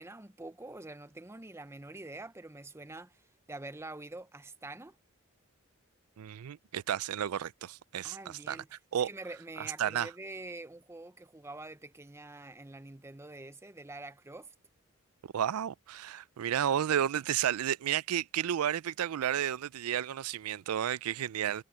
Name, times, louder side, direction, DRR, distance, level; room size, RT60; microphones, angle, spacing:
voice 1, 0.0-5.0 8.0-8.7 9.0-14.5, right 2 dB, 10° right, 0.7 m, -46 dB
voice 2, 6.2-8.6 8.9-9.1 9.8-10.1 15.3-21.6, right 10 dB, 90° right, 0.4 m, -32 dB
head